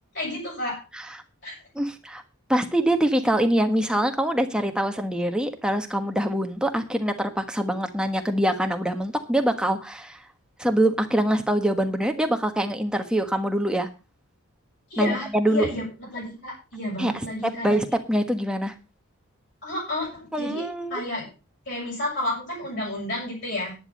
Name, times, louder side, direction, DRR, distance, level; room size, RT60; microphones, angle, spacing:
voice 1, 0.1-0.8 1.4-1.5 14.9-15.8 16.1-17.7 19.6-21.3 21.7-23.7, left 1 dB, 50° left, -5 dB, 7.0 m, -31 dB
voice 2, 1.7-2.2 2.5-10.2 10.6-13.9 15.0-15.7 17.0-18.7 20.3-21.0, right 1 dB, 5° right, 5 dB, 1.3 m, -24 dB
11.0 x 10.5 x 5.4 m, 0.31 s
head